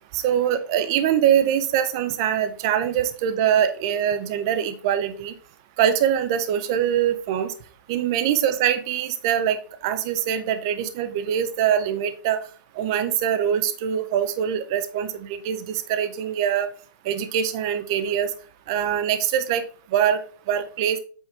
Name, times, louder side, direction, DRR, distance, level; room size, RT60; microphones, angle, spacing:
voice 1, 0.1-5.3 5.8-7.5 7.9-12.4 12.8-16.7 17.1-18.3 18.7-19.6 19.9-20.2 20.5-21.0, right 9 dB, 10° right, 11 dB, 0.4 m, -23 dB
8.0 x 5.9 x 3.3 m, 0.40 s
hypercardioid pair, 175°, 11 cm